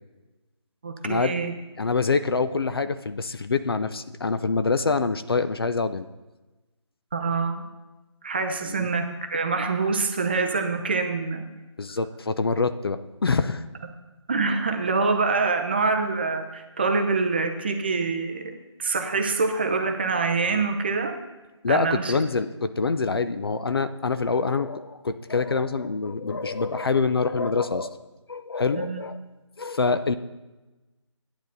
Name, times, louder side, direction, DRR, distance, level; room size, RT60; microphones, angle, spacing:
voice 1, 0.8-1.6 7.1-7.7 8.2-11.5 14.3-18.5 18.8-21.1 21.7-22.2 28.7-29.0, right 4 dB, 20° right, 5 dB, 0.6 m, -25 dB
voice 2, 1.8-6.1 8.7-8.9 11.8-13.6 21.6-28.0 28.3-29.2 29.6-30.1, left 4 dB, 50° left, 11 dB, 0.6 m, -25 dB
11.5 x 9.0 x 4.1 m, 1.1 s
figure-of-eight pair, 160°, 16 cm